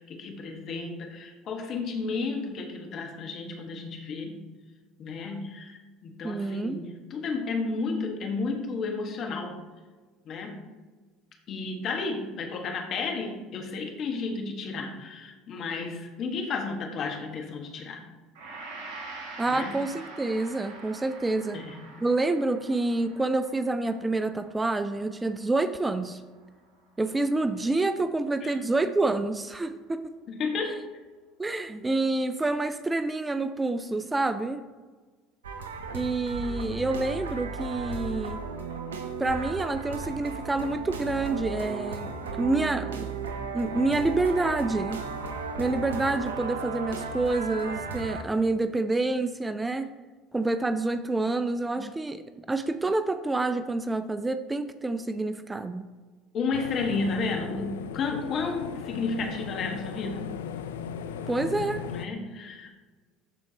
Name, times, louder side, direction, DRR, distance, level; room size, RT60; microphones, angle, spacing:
voice 1, 0.0-4.4 5.0-9.6 10.2-10.6 11.5-18.0 19.5-19.8 21.5-21.8 28.4-28.6 30.3-30.8 56.3-60.3 61.8-62.8, left 4 dB, 50° left, 3 dB, 1.4 m, -32 dB
voice 2, 6.2-6.8 19.4-21.6 22.0-26.2 27.0-30.1 31.4-34.6 35.9-38.4 39.2-43.1 43.5-45.0 45.6-49.9 50.3-52.2 52.5-55.9 61.3-61.8, right 2 dB, 15° right, 10 dB, 0.4 m, -28 dB
Gong, 18.3-26.8 27.1-27.3, right 3 dB, 65° right, 1.9 m, -46 dB
sound 1, 35.4-48.2, right 4 dB, 80° right, 0.6 m, -35 dB
sound 2, 56.5-62.1, left 7 dB, 75° left, 0.4 m, -37 dB
13.0 x 4.5 x 2.8 m, 1.3 s
hypercardioid pair, 70°, 0 cm